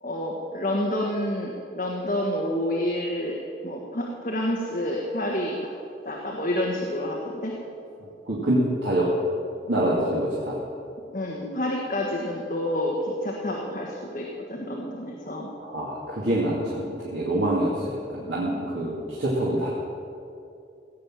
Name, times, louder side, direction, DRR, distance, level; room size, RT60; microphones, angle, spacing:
voice 1, 0.0-5.7 6.0-7.5 11.1-15.5, left 1 dB, 45° left, -1 dB, 1.5 m, -29 dB
voice 2, 8.3-9.1 9.7-10.6 15.6-19.7, right 1 dB, 90° right, -5 dB, 2.3 m, -26 dB
16.5 x 8.5 x 7.4 m, 2.6 s
head